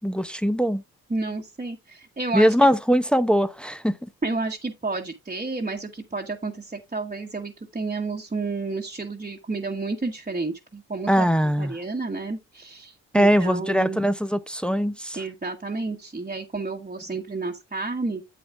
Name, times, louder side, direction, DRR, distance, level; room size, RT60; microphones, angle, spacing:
voice 1, 0.0-0.8 2.3-4.1 11.1-11.8 13.1-15.2, equal, 5° left, 0.6 m, -21 dB
voice 2, 1.1-2.5 4.2-11.3 11.6-14.1 15.1-18.2, right 3 dB, 20° right, 1.2 m, -31 dB
9.1 x 7.7 x 2.4 m
supercardioid pair, 50°, 36 cm